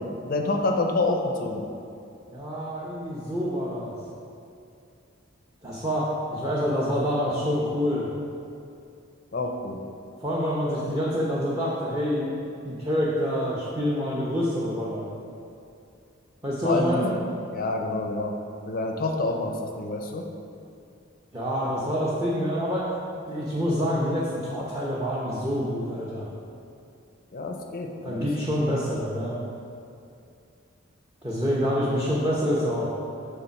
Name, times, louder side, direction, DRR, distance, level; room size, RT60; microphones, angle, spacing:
voice 1, 0.0-1.6 9.3-9.8 16.6-17.1 17.5-18.3 18.7-20.2 27.3-28.5, left 2 dB, 45° left, 3 dB, 0.5 m, -27 dB
voice 2, 2.3-3.9 5.6-8.1 10.2-12.3 12.6-15.0 16.4-17.1 21.3-22.9 23.3-26.3 28.0-29.4 31.2-32.9, equal, 20° right, -6 dB, 0.7 m, -27 dB
6.8 x 3.8 x 5.8 m, 2.5 s
head